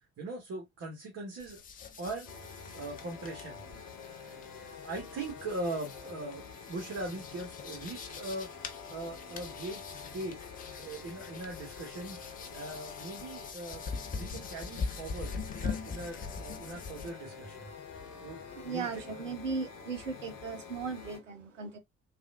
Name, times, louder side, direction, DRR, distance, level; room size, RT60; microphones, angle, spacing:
voice 1, 0.2-1.6 2.0-2.3 2.7-3.6 4.8-8.5 8.9-10.4 10.8-12.2 12.5-13.8 14.2-17.7 18.2-19.1, right 2 dB, 40° right, 1.1 m, -40 dB
sound 1, 1.4-17.1, left 5 dB, 25° left, 0.5 m, -43 dB
sound 2, 2.3-21.2, left 5 dB, 45° left, 1.0 m, -47 dB
voice 2, 18.5-21.8, right 5 dB, 85° right, 0.6 m, -37 dB
3.4 x 2.4 x 2.4 m
figure-of-eight pair, 55°, 37 cm